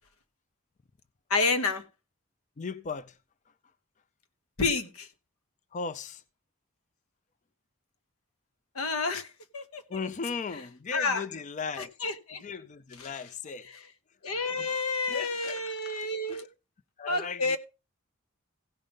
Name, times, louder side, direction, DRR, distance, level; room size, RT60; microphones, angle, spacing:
voice 1, 1.3-1.8 4.6-5.1 8.7-9.3 9.5-10.1 10.9-11.2 11.8-12.4 13.0-13.1 14.2-16.5 17.1-17.6, left 3 dB, 90° left, 1.1 m, -29 dB
voice 2, 2.6-3.2 5.7-6.2 9.9-11.9 12.4-13.7 14.6-15.6 16.3-16.5 17.0-17.6, left 5 dB, 35° left, 0.4 m, -37 dB
15.5 x 5.3 x 5.3 m
head